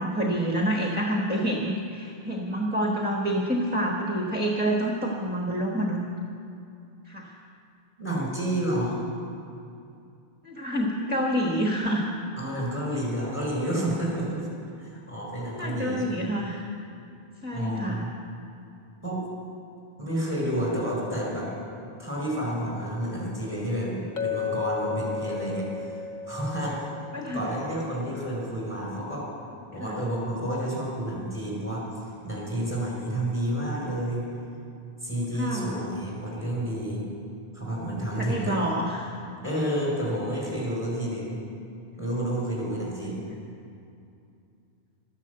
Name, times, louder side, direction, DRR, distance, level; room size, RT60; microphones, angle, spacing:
voice 1, 0.0-6.0 7.1-7.3 10.4-12.1 15.5-16.7 17.4-18.1 27.1-27.4 29.8-30.0 35.3-35.8 38.2-39.1, equal, 10° right, -1 dB, 1.2 m, -27 dB
voice 2, 8.0-9.0 12.4-14.5 14.8-16.3 17.5-18.1 19.0-19.2 20.0-21.5 22.0-26.8 27.3-29.3 29.7-31.9 32.2-34.2 35.0-37.0 37.5-38.6 39.4-41.4 42.0-43.2, right 1 dB, 10° left, -4 dB, 4.4 m, -30 dB
Chink clink, 24.2-28.3, left 6 dB, 50° left, 0.9 m, -34 dB
13.0 x 10.5 x 7.9 m, 2.6 s
omnidirectional pair, 1.1 m